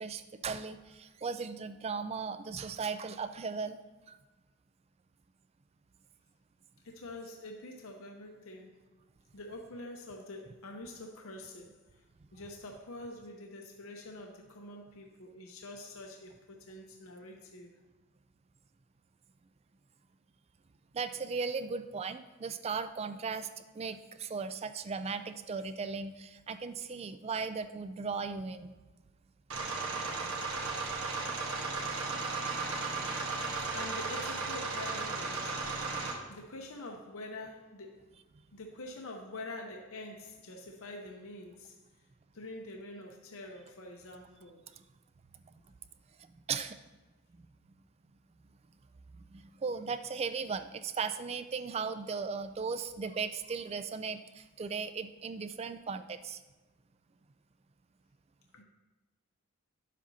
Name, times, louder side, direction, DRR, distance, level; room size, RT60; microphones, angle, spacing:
voice 1, 0.0-3.8 4.1-4.2 20.9-23.5 23.7-28.7 30.0-30.3 30.9-31.2 44.7-44.8 45.4-45.5 46.2-46.8 47.4-47.5 49.1-56.4, right 5 dB, 30° right, 11 dB, 0.3 m, -37 dB
voice 2, 6.8-8.8 9.3-12.0 12.3-17.7 33.6-35.6 36.3-38.1 38.5-41.7 42.3-44.6 58.5-58.6, left 2 dB, 70° left, 2 dB, 0.8 m, -46 dB
sound 1, 29.5-36.1, right 3 dB, 75° right, 1.3 m, -35 dB
10.5 x 7.4 x 2.7 m, 1.2 s
head